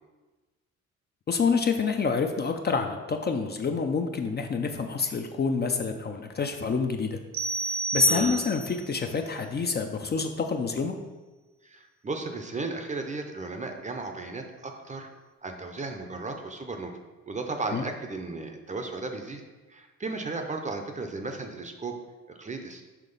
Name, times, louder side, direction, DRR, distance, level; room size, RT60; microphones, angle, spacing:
voice 1, 1.3-7.2 7.9-11.0 17.7-17.8, left 5 dB, 35° left, 4 dB, 0.5 m, -27 dB
sound 1, 7.3-8.9, right 3 dB, 70° right, 1.0 m, -30 dB
voice 2, 8.1-8.4 11.6-15.1 15.4-16.9 17.3-19.4 19.7-22.0 22.3-22.8, right 3 dB, 25° right, 5 dB, 0.6 m, -35 dB
5.9 x 3.0 x 5.3 m, 1.2 s
cardioid pair, 90°, 30 cm